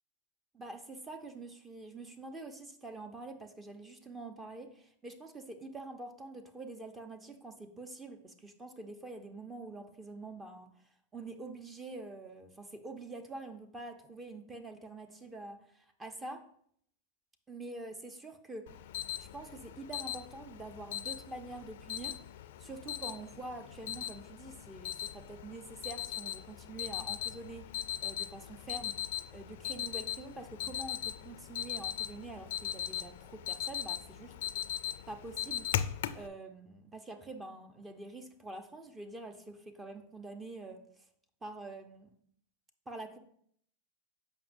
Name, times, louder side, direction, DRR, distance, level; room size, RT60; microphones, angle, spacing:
voice 1, 0.5-10.7 11.1-16.4 17.5-18.9 19.2-22.2 22.6-29.0 29.3-34.3 35.1-35.7 36.1-40.8 41.4-42.1 42.9-43.2, right 2 dB, 15° right, 7 dB, 0.7 m, -46 dB
Alarm, 18.7-36.3, left 11 dB, 70° left, 0.3 m, -39 dB
7.5 x 5.2 x 2.6 m, 0.65 s
hypercardioid pair, 105°, 0 cm